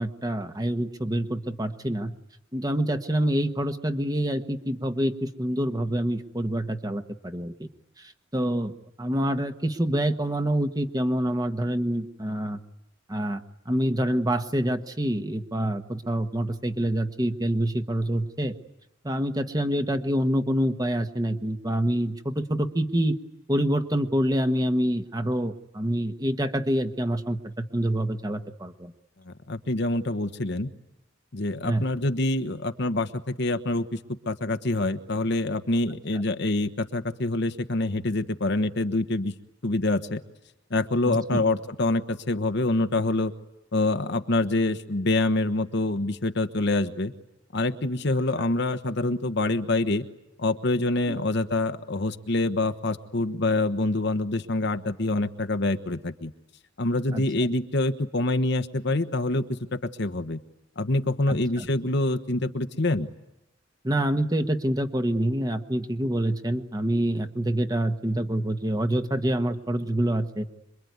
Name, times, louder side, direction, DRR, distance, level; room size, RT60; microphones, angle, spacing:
voice 1, 0.0-2.1 2.5-7.5 8.0-8.7 9.0-12.6 13.1-18.5 19.0-23.1 23.5-28.9 31.6-31.8 41.0-41.4 48.4-48.5 51.1-51.2 57.1-57.2 61.3-61.7 63.8-70.5, right 1 dB, 20° right, 7 dB, 1.4 m, -26 dB
voice 2, 29.2-30.7 31.3-34.0 34.2-39.3 39.6-40.2 40.7-43.3 43.7-47.1 47.5-50.0 50.4-56.3 56.8-60.4 60.8-63.1, left 2 dB, 60° left, 9 dB, 1.3 m, -26 dB
26.5 x 23.0 x 9.5 m, 0.91 s
head